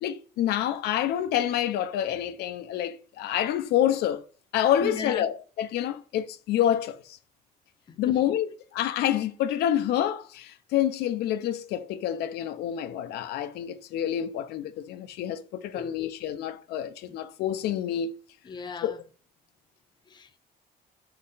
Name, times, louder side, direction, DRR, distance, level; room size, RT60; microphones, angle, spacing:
voice 1, 0.0-4.2 4.5-7.2 8.0-18.2 18.8-18.9, left 11 dB, 75° left, 0.4 m, -28 dB
voice 2, 4.8-5.3 8.1-8.2 15.7-16.0 17.1-17.2 18.4-19.0 20.1-20.4, left 5 dB, 25° left, 0.5 m, -37 dB
3.8 x 3.1 x 3.9 m
cardioid pair, 110°, 17 cm